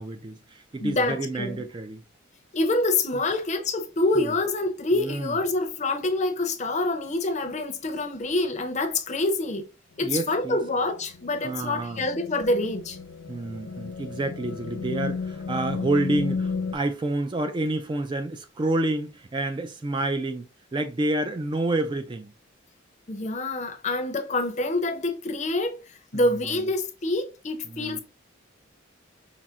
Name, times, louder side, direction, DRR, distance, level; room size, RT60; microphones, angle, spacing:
voice 1, 0.0-2.0 4.2-4.3 5.0-5.4 10.0-10.6 11.4-12.0 13.3-22.3 26.1-26.6 27.7-28.0, right 2 dB, 20° right, 0.3 m, -29 dB
voice 2, 0.8-1.6 2.5-9.7 10.0-13.0 23.1-28.0, left 2 dB, 35° left, 0.6 m, -26 dB
sound 1, 10.3-16.7, left 4 dB, 85° left, 0.6 m, -33 dB
5.6 x 2.0 x 3.6 m
head